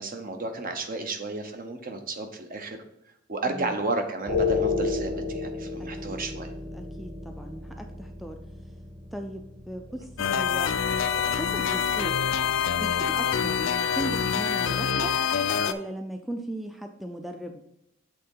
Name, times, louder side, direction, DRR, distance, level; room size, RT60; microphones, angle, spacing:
voice 1, 0.0-2.8 3.3-6.5 9.9-10.0, right 3 dB, 45° right, 6 dB, 0.9 m, -32 dB
sound 1, 4.3-14.5, left 4 dB, 30° right, 1.8 m, -34 dB
voice 2, 5.8-6.2 6.7-8.4 9.1-10.7 11.2-12.2 12.8-15.2 15.7-17.6, equal, ahead, 4 dB, 0.4 m, -37 dB
sound 2, 10.2-15.7, left 7 dB, 75° left, 0.5 m, -26 dB
7.7 x 3.7 x 5.6 m, 0.78 s
head